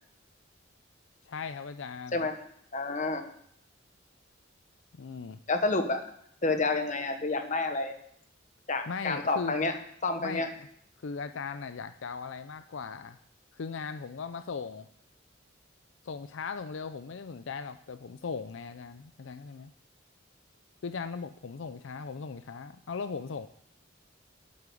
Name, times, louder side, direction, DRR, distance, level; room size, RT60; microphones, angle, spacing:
voice 1, 1.2-2.3 5.0-5.4 8.9-9.5 10.2-10.7 11.0-13.2 13.5-14.9 16.0-19.7 20.8-23.5, left 5 dB, 75° left, 10 dB, 0.5 m, -38 dB
voice 2, 2.7-3.2 5.5-6.0 6.4-7.9 8.7-9.7 10.0-10.5, left 3 dB, 40° left, 6 dB, 1.3 m, -29 dB
8.7 x 8.3 x 8.5 m, 0.69 s
head